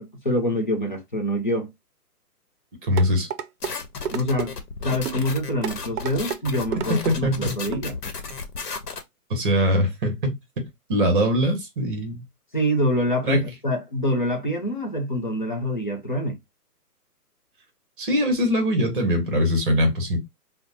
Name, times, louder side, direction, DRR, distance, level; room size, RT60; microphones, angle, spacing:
voice 1, 0.0-1.7 4.1-4.6 4.8-8.0 12.5-16.4, equal, 35° left, 0.4 m, -25 dB
voice 2, 2.9-3.3 7.1-7.6 9.3-10.3 10.9-12.2 13.2-13.4 18.0-20.2, equal, 35° right, 1.0 m, -22 dB
sound 1, 3.0-3.7 4.1-4.5 5.1-5.2 5.6-6.4 6.7-7.2 7.7-7.9 8.3-8.4, right 8 dB, 75° right, 0.5 m, -30 dB
sound 2, 3.6-9.0, left 4 dB, 80° left, 1.0 m, -34 dB
2.6 x 2.1 x 3.9 m
hypercardioid pair, 160°, 47 cm